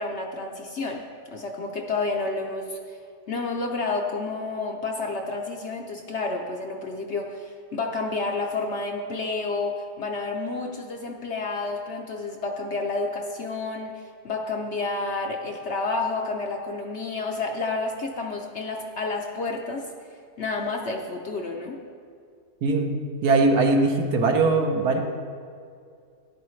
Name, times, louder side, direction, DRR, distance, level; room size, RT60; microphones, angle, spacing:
voice 1, 0.0-3.0 3.3-19.9 20.4-21.8, left 3 dB, 55° left, 2 dB, 0.8 m, -30 dB
voice 2, 22.6-22.9 23.2-25.0, right 3 dB, 70° right, 3 dB, 1.4 m, -20 dB
12.5 x 9.7 x 3.2 m, 2.3 s
omnidirectional pair, 1.7 m